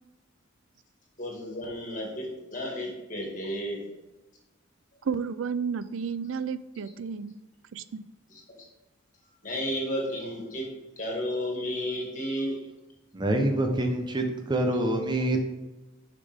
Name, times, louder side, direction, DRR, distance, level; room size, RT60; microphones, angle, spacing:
voice 1, 1.2-3.8 8.3-8.4 9.4-10.7 11.0-12.6, equal, 40° left, -2 dB, 2.1 m, -32 dB
voice 2, 5.1-7.4 7.7-8.0, right 6 dB, 75° right, 14 dB, 0.4 m, -32 dB
voice 3, 13.1-15.4, right 1 dB, 20° right, 3 dB, 0.9 m, -26 dB
6.9 x 5.9 x 3.6 m, 1.1 s
head